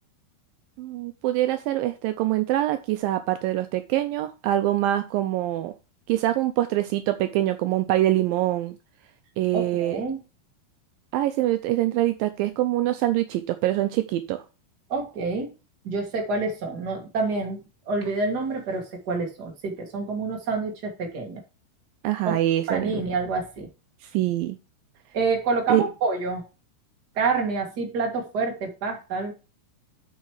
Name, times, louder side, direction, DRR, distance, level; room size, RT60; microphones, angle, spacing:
voice 1, 0.8-5.7 6.1-8.8 9.4-10.0 11.1-14.4 22.0-23.0 24.0-24.6 25.7-25.8, right 14 dB, 90° right, 10 dB, 2.0 m, -24 dB
voice 2, 9.5-10.2 14.9-15.5 15.8-21.4 22.3-22.4 22.7-23.7 25.1-26.4 27.2-29.3, right 3 dB, 35° right, 2 dB, 1.8 m, -27 dB
8.3 x 5.6 x 4.8 m, 0.31 s
omnidirectional pair, 4.7 m